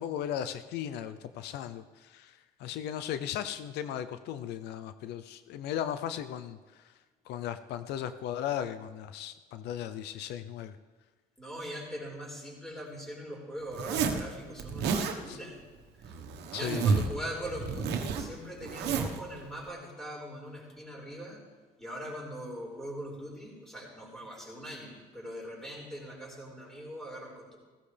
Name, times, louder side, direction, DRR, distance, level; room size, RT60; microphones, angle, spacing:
voice 1, 0.0-6.9 7.3-10.8 15.3-15.4 16.5-17.0, left 10 dB, 80° left, 11 dB, 0.6 m, -37 dB
voice 2, 11.4-15.6 16.0-16.2 16.5-21.4 21.8-27.6, equal, 5° left, -3 dB, 4.8 m, -41 dB
Zipper (clothing), 13.7-14.2 14.6-15.2 16.0-17.2 17.4-19.2, right 5 dB, 80° right, 1.3 m, -30 dB
16.0 x 15.0 x 3.4 m, 1.3 s
cardioid pair, 110°, 17 cm